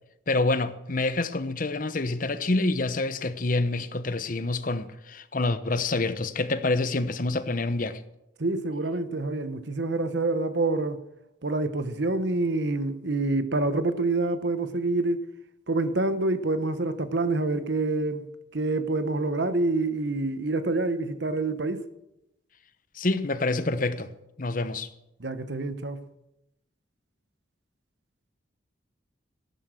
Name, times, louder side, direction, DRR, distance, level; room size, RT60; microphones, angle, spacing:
voice 1, 0.3-8.0 22.9-24.1 24.4-24.9, left 2 dB, 45° left, 0.9 m, -27 dB
voice 2, 8.4-11.0 11.4-15.2 15.7-18.3 18.5-21.8 25.2-26.0, right 2 dB, 65° right, 1.0 m, -27 dB
14.5 x 11.5 x 6.3 m
head